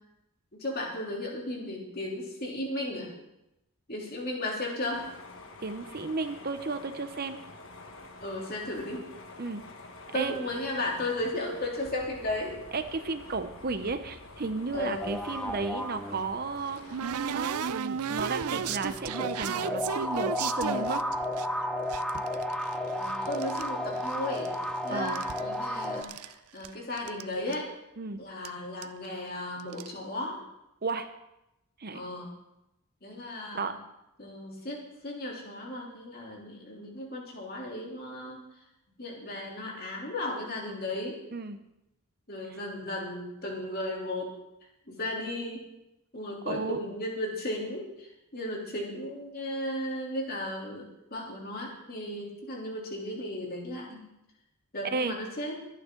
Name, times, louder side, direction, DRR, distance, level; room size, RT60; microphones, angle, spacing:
voice 1, 0.6-3.1 3.9-5.0 8.2-9.0 10.1-12.6 14.7-15.0 22.9-24.5 24.8-27.7 28.2-30.4 31.9-32.3 33.0-33.7 34.2-38.4 39.0-41.2 42.3-44.3 44.9-45.6 46.1-54.0 54.7-55.6, left 1 dB, 45° left, -2 dB, 3.2 m, -35 dB
sound 1, 4.9-17.4, left 2 dB, 60° left, 1.4 m, -48 dB
voice 2, 5.6-7.4 9.4-9.6 10.1-10.3 12.7-17.0 17.3-21.0 24.9-25.2 28.0-28.2 30.8-31.1 31.8-32.1 33.5-33.8 41.3-41.6 42.5-42.6 46.5-47.0 54.8-55.2, right 3 dB, 45° right, 9 dB, 0.7 m, -33 dB
sound 2, 15.0-16.7 18.0-26.0, left 1 dB, 5° left, 0.7 m, -33 dB
sound 3, 16.0-21.5 21.9-23.7 24.0-24.7 25.0-26.3 26.6-26.7 27.0-27.2 27.5-27.6 28.4-28.5 28.8-29.1 29.6-29.9, right 7 dB, 85° right, 0.5 m, -34 dB
23.0 x 9.0 x 3.8 m, 0.88 s
head